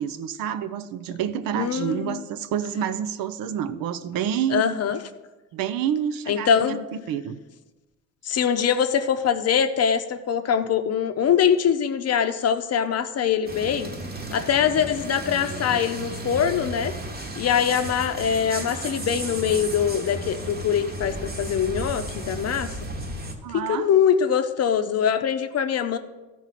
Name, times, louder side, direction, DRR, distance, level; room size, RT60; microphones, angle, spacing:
voice 1, 0.0-4.8 5.5-7.4 23.4-23.9, right 9 dB, 80° right, 12 dB, 0.6 m, -28 dB
voice 2, 1.5-2.2 4.5-5.0 6.3-6.8 8.2-13.9 14.3-16.9 17.4-22.7 23.5-26.0, left 8 dB, 45° left, 9 dB, 0.7 m, -23 dB
sound 1, 13.4-23.3, right 2 dB, 30° right, 1.1 m, -34 dB
13.0 x 4.6 x 4.1 m, 1.2 s
cardioid pair, 105°, 34 cm